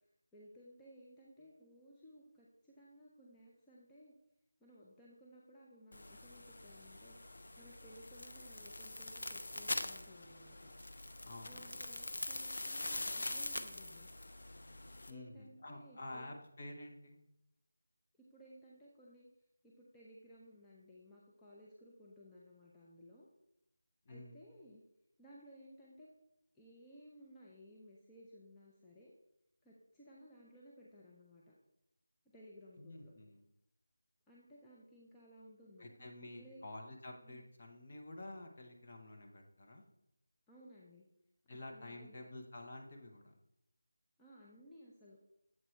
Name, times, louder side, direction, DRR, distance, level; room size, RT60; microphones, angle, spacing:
voice 1, 0.3-4.1 4.6-7.2 7.6-10.7 11.4-14.1 15.1-16.3 18.3-19.3 19.6-23.3 24.1-24.8 25.2-26.1 26.5-29.1 29.6-31.5 32.3-33.1 34.3-36.1 36.3-36.6 37.2-37.5 40.5-41.1 41.5-42.2 44.2-45.2, equal, 5° left, -6 dB, 0.4 m, -59 dB
sound 1, 5.9-15.1, left 2 dB, 65° left, 0.5 m, -44 dB
voice 2, 11.2-11.9 15.1-17.2 24.1-24.4 32.8-33.4 35.8-39.8 41.5-43.3, left 2 dB, 35° left, 2 dB, 0.8 m, -50 dB
7.5 x 4.4 x 3.0 m, 0.81 s
figure-of-eight pair, 175°, 0 cm